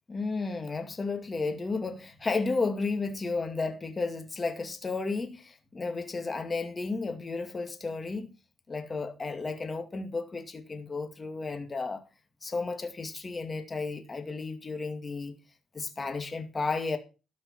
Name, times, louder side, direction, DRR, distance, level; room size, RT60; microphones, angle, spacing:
voice 1, 0.1-8.3 8.7-12.0 12.4-15.4 15.7-17.0, left 3 dB, 30° left, 2.1 m, -33 dB
12.5 x 5.5 x 7.4 m
cardioid pair, 90°, 0 cm